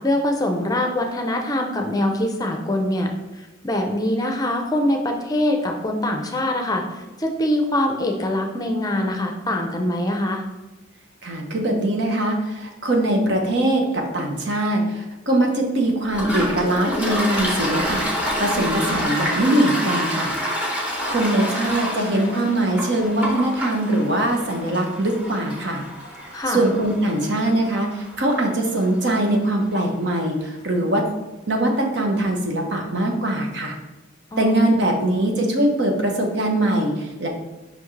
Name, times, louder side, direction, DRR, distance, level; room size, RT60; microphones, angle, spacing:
voice 1, 0.0-3.1 3.6-10.4 26.3-26.6 34.3-34.7, left 1 dB, 20° left, 3 dB, 0.6 m, -23 dB
voice 2, 11.2-18.1 18.4-20.3 21.1-25.8 26.5-31.1 31.5-33.8 34.4-37.3, right 1 dB, 60° right, 2 dB, 1.1 m, -22 dB
Toilet flush, 16.1-29.5, equal, 5° right, 1.1 m, -28 dB
5.9 x 5.2 x 3.3 m, 1.1 s
head